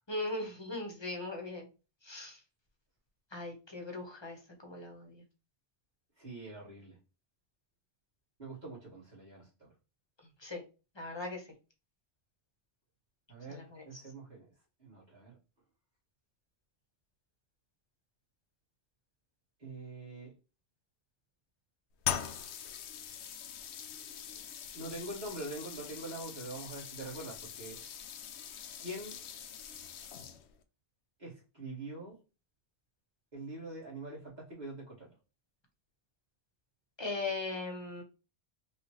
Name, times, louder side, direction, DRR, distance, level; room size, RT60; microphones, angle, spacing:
voice 1, 0.1-1.7 2.0-2.4 3.3-4.4 4.6-5.2 10.4-10.6 11.0-11.4 13.5-14.0 37.0-38.0, left 2 dB, 25° left, 1 dB, 1.0 m, -39 dB
voice 2, 6.2-7.0 8.4-9.7 13.3-14.5 14.8-15.4 19.6-20.3 24.7-27.8 28.8-29.2 31.2-32.2 33.3-35.1, right 2 dB, 40° right, -6 dB, 2.1 m, -44 dB
sound 1, 22.0-30.6, left 9 dB, 80° left, 0.8 m, -42 dB
5.5 x 2.4 x 3.0 m, 0.32 s
omnidirectional pair, 1.1 m